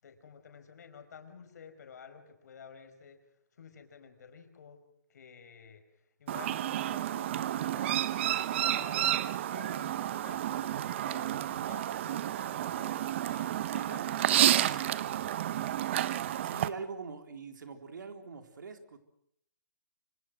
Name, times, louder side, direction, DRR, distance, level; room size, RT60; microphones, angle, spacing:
voice 1, 0.0-3.2 3.5-4.8 5.1-9.1 9.5-15.2, left 6 dB, 55° left, 7 dB, 4.9 m, -52 dB
Chirp tweet, 6.3-16.7, right 12 dB, 35° right, 0.9 m, -30 dB
voice 2, 16.4-19.0, right 5 dB, 75° right, 7 dB, 3.8 m, -43 dB
26.5 x 26.0 x 6.3 m, 0.71 s
hypercardioid pair, 160°, 10 cm